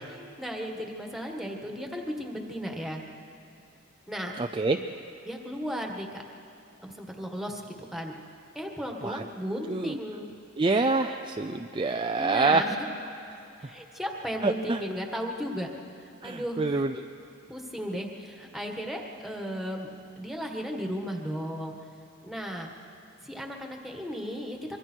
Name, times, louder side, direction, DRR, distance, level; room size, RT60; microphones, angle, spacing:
voice 1, 0.0-3.0 4.1-4.3 5.2-6.2 6.8-8.1 8.5-10.3 12.1-12.7 13.6-15.7 16.0-16.8 17.5-19.9 20.2-21.7 22.2-22.7 23.2-24.6, equal, ahead, 1 dB, 1.6 m, -35 dB
voice 2, 4.4-4.8 9.0-9.2 9.7-10.0 10.6-12.6 14.4-14.8 16.2-16.9, right 3 dB, 25° right, 5 dB, 0.4 m, -26 dB
25.0 x 23.0 x 4.6 m, 2.9 s
head